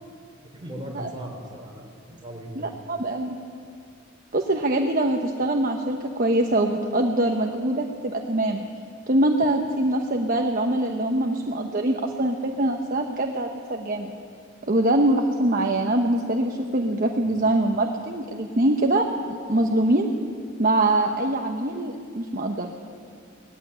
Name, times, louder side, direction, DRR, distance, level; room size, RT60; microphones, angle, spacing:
voice 1, 0.5-2.7 17.3-17.4, right 1 dB, 25° right, 0 dB, 3.5 m, -38 dB
voice 2, 2.6-3.4 4.3-8.6 9.1-14.1 14.6-19.1 19.5-20.1 20.6-22.7, right 1 dB, 40° right, 2 dB, 1.0 m, -23 dB
19.0 x 14.5 x 9.8 m, 2.3 s
head